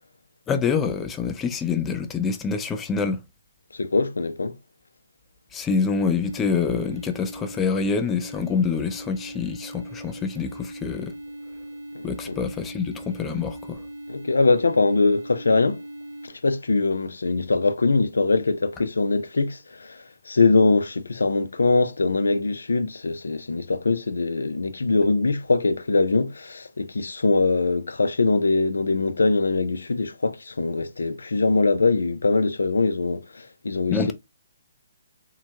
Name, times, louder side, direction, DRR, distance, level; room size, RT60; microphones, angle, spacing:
voice 1, 0.5-3.2 5.5-11.1 12.0-13.8 33.9-34.1, left 5 dB, 15° left, 0.4 m, -26 dB
voice 2, 3.7-4.6 11.9-12.4 14.1-15.8 16.2-34.1, left 3 dB, 80° left, 0.4 m, -22 dB
sound 1, 6.2-16.3, right 1 dB, 80° right, 0.7 m, -39 dB
2.8 x 2.1 x 2.8 m
figure-of-eight pair, 140°, 0 cm